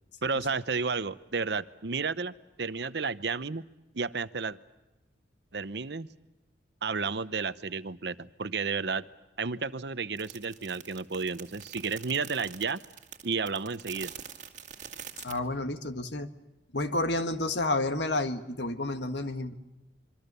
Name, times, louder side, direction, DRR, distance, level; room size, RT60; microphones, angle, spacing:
voice 1, 0.2-3.6 3.9-4.6 5.5-6.1 6.8-9.0 9.4-12.8 13.2-14.1, right 4 dB, 60° right, 14 dB, 0.8 m, -32 dB
sound 1, 10.2-15.4, right 8 dB, 40° right, 2.1 m, -45 dB
voice 2, 15.2-16.3 16.7-19.5, left 2 dB, 65° left, 8 dB, 1.6 m, -30 dB
26.0 x 24.5 x 6.9 m, 1.0 s
head